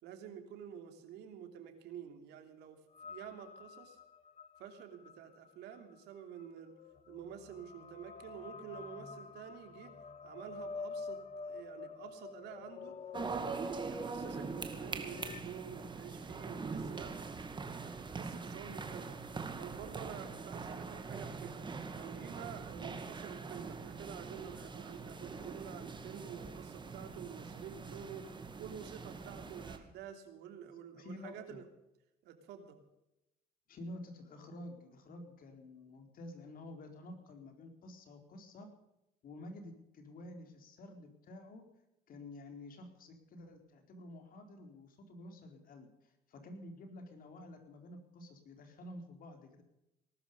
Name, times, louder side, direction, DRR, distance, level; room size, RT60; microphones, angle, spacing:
voice 1, 0.0-4.0 4.6-6.7 7.1-9.9 10.2-12.9 13.3-17.1 17.8-19.1 19.6-21.6 21.9-28.3 28.6-31.7 32.2-32.8, right 8 dB, 85° right, 6 dB, 3.0 m, -49 dB
sound 1, 2.9-15.4, left 4 dB, 40° left, 1.3 m, -48 dB
sound 2, 13.1-29.8, right 4 dB, 25° right, 2.2 m, -43 dB
voice 2, 30.9-31.6 33.7-38.7 39.2-41.6 42.1-49.6, left 1 dB, 55° left, 5 dB, 4.2 m, -50 dB
19.0 x 12.5 x 5.4 m, 0.88 s
cardioid pair, 110°, 17 cm